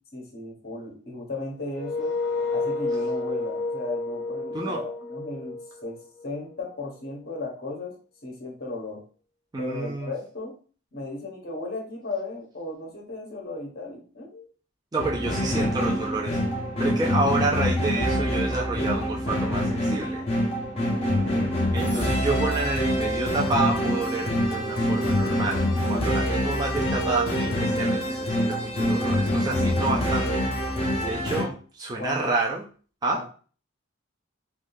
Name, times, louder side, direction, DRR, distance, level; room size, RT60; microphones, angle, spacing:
voice 1, 0.1-2.2 2.5-7.9 8.2-9.0 9.6-10.6 10.9-14.5 20.9-21.7 31.4-31.6 32.0-32.3 33.1-33.3, left 2 dB, 50° left, 0 dB, 1.0 m, -36 dB
sound 1, 1.7-6.6, left 3 dB, 75° left, 0.8 m, -30 dB
voice 2, 9.5-10.1 14.9-16.4 16.8-20.2 21.7-30.4 31.0-32.6 33.0-33.2, right 3 dB, 20° right, -2 dB, 0.4 m, -29 dB
sound 2, 15.0-31.4, equal, 30° left, 0.7 m, -25 dB
3.5 x 2.3 x 2.6 m, 0.39 s
head